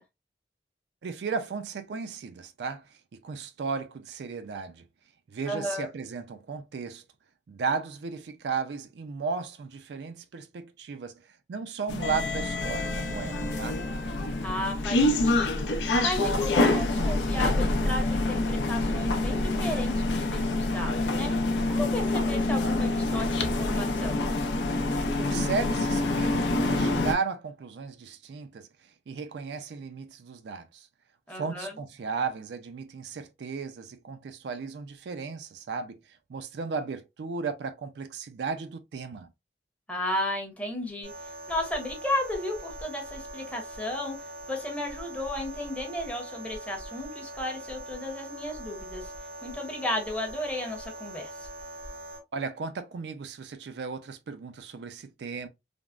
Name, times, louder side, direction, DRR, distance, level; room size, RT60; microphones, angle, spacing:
voice 1, 1.0-4.8 5.3-7.0 7.5-13.8 25.2-30.9 31.3-39.3 52.3-55.5, right 5 dB, 75° right, 0.4 m, -35 dB
voice 2, 5.5-5.9 14.4-15.7 16.0-24.2 31.3-31.7 39.9-41.1 41.5-44.2 44.5-49.1 49.4-51.5, left 1 dB, 10° left, 0.7 m, -34 dB
sound 1, 11.9-27.1, left 2 dB, 85° left, 0.5 m, -26 dB
sound 2, 41.0-52.2, right 1 dB, 90° right, 1.0 m, -42 dB
3.4 x 2.0 x 2.3 m
head